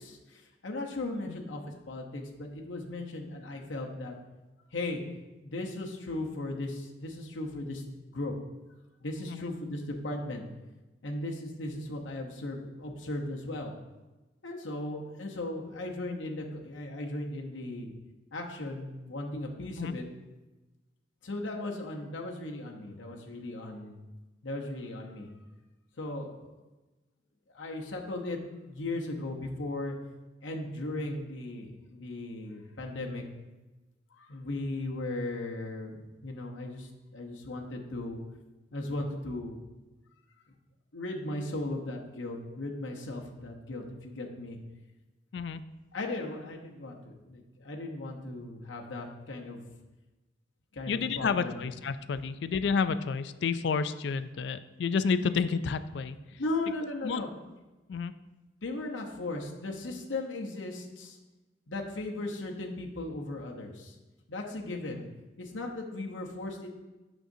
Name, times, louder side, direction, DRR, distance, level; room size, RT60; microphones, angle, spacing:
voice 1, 0.0-4.2 4.7-5.0 5.4-8.3 9.0-10.4 11.0-13.7 14.4-17.9 18.3-20.0 21.2-24.0 24.4-25.3 26.0-26.5 27.5-28.4 28.7-30.0 30.4-33.2 34.1-38.2 38.7-39.6 40.9-44.6 45.9-49.6 50.7-51.6 56.4-57.3 58.6-61.2 61.7-64.0 64.3-65.0 65.4-66.7, left 2 dB, 75° left, 0 dB, 0.9 m, -37 dB
voice 2, 45.3-45.6 50.9-56.2 57.0-57.2 57.9-58.1, left 5 dB, 60° left, 13 dB, 0.3 m, -30 dB
8.9 x 6.3 x 2.7 m, 1.1 s
head